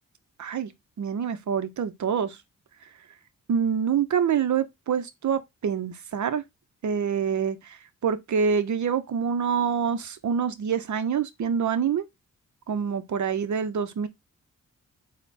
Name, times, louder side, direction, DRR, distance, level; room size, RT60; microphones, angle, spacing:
voice 1, 0.4-0.7 1.0-2.4 3.5-6.4 6.8-12.1 12.7-14.1, right 7 dB, 60° right, 0.8 m, -26 dB
4.2 x 2.3 x 4.1 m
cardioid pair, 50°, 33 cm